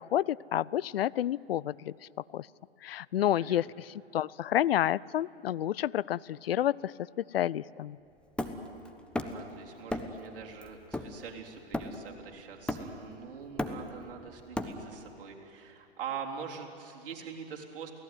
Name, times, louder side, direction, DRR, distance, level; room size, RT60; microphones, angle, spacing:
voice 1, 0.0-1.9 2.3-2.5 2.8-8.0, left 12 dB, 65° left, 22 dB, 0.6 m, -30 dB
voice 2, 3.2-3.6 9.2-17.9, right 7 dB, 55° right, 0 dB, 3.9 m, -44 dB
Hammer, 8.4-9.5 9.9-10.2 10.6-12.2 12.7-13.1 13.4-15.1, left 1 dB, 5° left, 1.3 m, -35 dB
29.0 x 17.5 x 9.5 m, 2.8 s
figure-of-eight pair, 110°, 32 cm